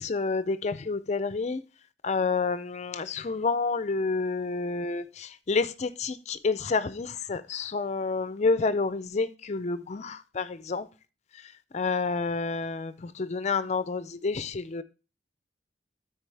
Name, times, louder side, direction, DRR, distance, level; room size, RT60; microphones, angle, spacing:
voice 1, 0.0-1.6 2.0-10.9 11.4-14.8, left 4 dB, 40° left, 0.4 m, -29 dB
12.5 x 4.6 x 3.3 m
head